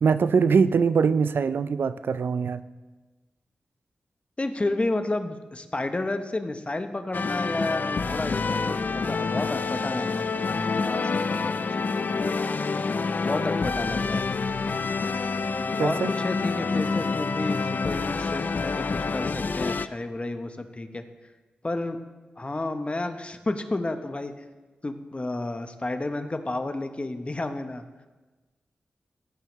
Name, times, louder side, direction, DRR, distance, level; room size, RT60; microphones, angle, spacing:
voice 1, 0.0-2.6 15.8-16.1, right 5 dB, 70° right, 14 dB, 0.4 m, -22 dB
voice 2, 4.4-11.0 11.3-11.9 13.2-14.2 15.8-21.0 21.6-22.0 22.4-24.3 24.8-27.8, left 2 dB, 30° left, 8 dB, 0.8 m, -31 dB
sound 1, 7.1-19.9, left 4 dB, 50° left, 0.3 m, -27 dB
15.5 x 5.6 x 3.1 m, 1.2 s
cardioid pair, 45°, 4 cm